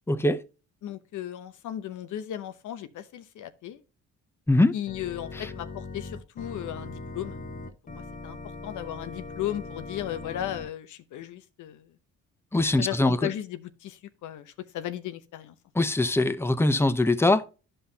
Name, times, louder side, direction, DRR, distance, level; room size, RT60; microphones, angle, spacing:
voice 1, 0.1-0.4 4.5-4.7 5.4-5.5 12.5-13.2 15.7-17.5, left 2 dB, 10° left, 0.7 m, -22 dB
voice 2, 0.8-3.8 4.7-7.4 7.9-8.4 8.6-11.9 12.8-15.6, left 12 dB, 80° left, 0.9 m, -36 dB
Organ, 4.9-10.7, left 3 dB, 25° left, 1.2 m, -40 dB
11.0 x 5.5 x 2.8 m
cardioid pair, 90°, 30 cm